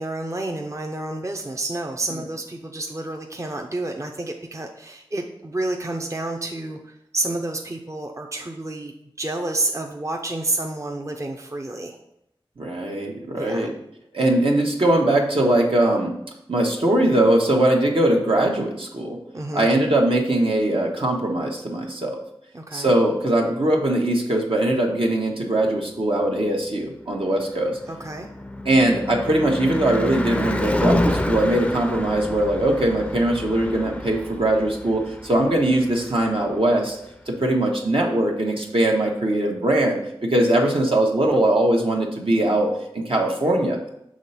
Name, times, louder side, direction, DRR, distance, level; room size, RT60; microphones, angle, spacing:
voice 1, 0.0-8.9 9.2-12.0 13.3-13.7 14.2-14.3 19.3-19.7 22.5-22.9 27.9-28.3, right 2 dB, 30° right, 2 dB, 0.6 m, -29 dB
voice 2, 12.6-13.7 14.1-16.1 16.5-19.2 19.5-22.2 22.7-27.8 28.6-37.0 37.3-43.9, right 1 dB, 70° right, 0 dB, 1.1 m, -21 dB
Car passing by / Truck / Engine, 26.7-36.9, left 1 dB, 10° left, 0.4 m, -29 dB
6.3 x 3.3 x 5.5 m, 0.78 s
wide cardioid pair, 55°, 10 cm